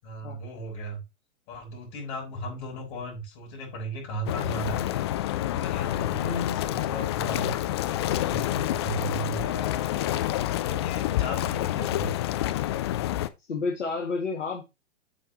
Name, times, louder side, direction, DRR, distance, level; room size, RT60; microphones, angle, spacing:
voice 1, 0.0-1.0 1.5-4.9 5.5-12.1, equal, 40° left, -1 dB, 6.5 m, -36 dB
sound 1, 4.3-13.3, left 13 dB, 25° left, 0.4 m, -28 dB
voice 2, 5.7-6.0 13.5-14.6, left 4 dB, 70° left, 1 dB, 2.2 m, -31 dB
8.4 x 7.6 x 3.0 m, 0.23 s
figure-of-eight pair, 115°, 38 cm